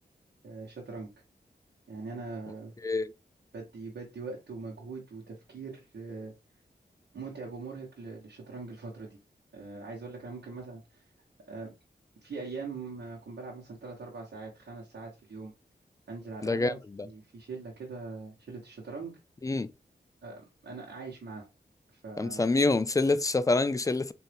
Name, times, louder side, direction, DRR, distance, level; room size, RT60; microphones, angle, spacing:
voice 1, 0.4-1.1 1.9-2.7 3.5-6.3 7.1-9.2 9.5-11.1 11.5-11.7 12.2-15.5 16.1-16.8 17.0-19.2 20.2-21.5 21.9-22.5, right 4 dB, 80° right, 1.2 m, -42 dB
voice 2, 16.4-16.7 19.4-19.7 22.2-24.1, left 3 dB, 20° left, 0.3 m, -26 dB
3.9 x 2.7 x 3.3 m
wide cardioid pair, 65°, 18 cm